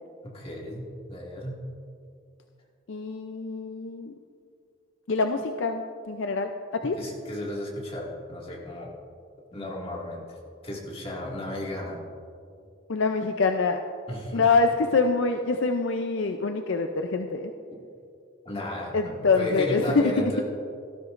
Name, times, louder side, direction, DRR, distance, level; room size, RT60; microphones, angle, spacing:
voice 1, 0.2-1.6 6.8-8.9 9.5-10.4 10.6-12.0 14.1-14.5 17.7-17.8 18.5-20.4, left 1 dB, 25° left, -4 dB, 2.0 m, -34 dB
voice 2, 2.9-4.1 5.1-6.5 6.8-6.9 12.9-13.8 14.3-17.5 18.9-20.3, left 4 dB, 65° left, 6 dB, 0.5 m, -25 dB
17.5 x 12.5 x 2.5 m, 2.4 s
head